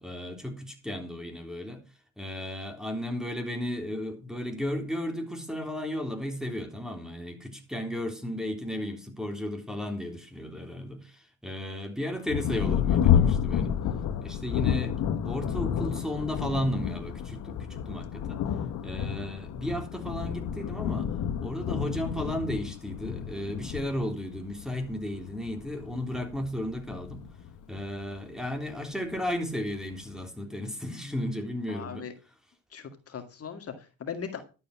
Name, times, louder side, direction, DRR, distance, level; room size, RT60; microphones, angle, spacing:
voice 1, 0.0-1.8 2.2-13.8 14.2-18.4 18.8-21.1 21.4-27.2 27.7-32.1, left 1 dB, ahead, 3.6 m, -34 dB
Thunder, 12.3-28.3 29.1-29.2 29.7-30.2, left 9 dB, 85° left, 1.4 m, -30 dB
voice 2, 31.7-32.1 32.7-34.4, left 7 dB, 50° left, 2.1 m, -39 dB
11.5 x 8.2 x 5.9 m
cardioid pair, 90°, 30 cm